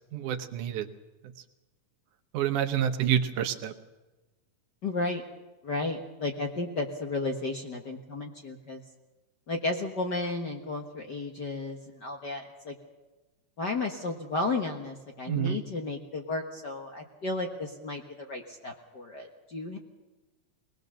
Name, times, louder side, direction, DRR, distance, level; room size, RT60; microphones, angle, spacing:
voice 1, 0.1-0.9 2.3-3.7 15.3-15.6, right 9 dB, 75° right, 8 dB, 2.5 m, -28 dB
voice 2, 4.8-5.2 5.6-8.8 9.5-12.7 13.6-19.8, left 2 dB, 45° left, 2 dB, 1.5 m, -33 dB
22.0 x 19.0 x 6.8 m, 1.1 s
omnidirectional pair, 3.6 m